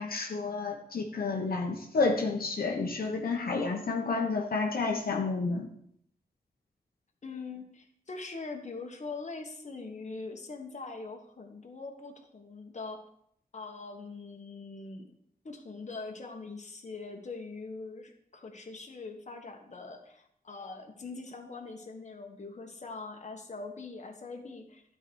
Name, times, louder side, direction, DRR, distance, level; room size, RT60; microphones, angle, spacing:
voice 1, 0.0-5.7, left 3 dB, 75° left, 0 dB, 1.1 m, -30 dB
voice 2, 7.2-13.0 13.5-15.1 15.4-24.8, left 3 dB, 50° left, 3 dB, 1.4 m, -42 dB
12.0 x 4.9 x 4.7 m, 0.70 s
wide cardioid pair, 85°, 15 cm